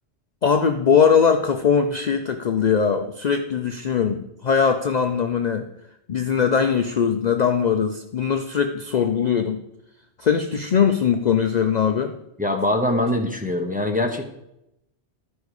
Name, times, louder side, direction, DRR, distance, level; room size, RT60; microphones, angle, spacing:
voice 1, 0.4-5.7 6.1-9.6 10.2-12.2, left 6 dB, 50° left, 6 dB, 0.6 m, -20 dB
voice 2, 12.4-14.3, left 1 dB, 10° right, 2 dB, 0.9 m, -23 dB
12.5 x 5.3 x 4.8 m, 0.82 s
omnidirectional pair, 1.2 m